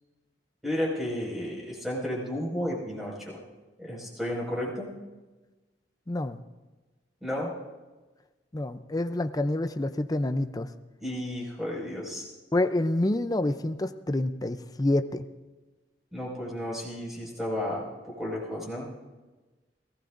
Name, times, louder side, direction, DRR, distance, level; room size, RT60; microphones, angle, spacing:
voice 1, 0.6-3.4 3.8-4.9 7.2-7.5 11.0-12.3 16.1-18.9, left 1 dB, ahead, -4 dB, 5.4 m, -32 dB
voice 2, 6.1-6.4 8.5-10.7 12.5-15.2, left 1 dB, 20° left, 10 dB, 0.5 m, -27 dB
22.0 x 17.5 x 2.6 m, 1.2 s
head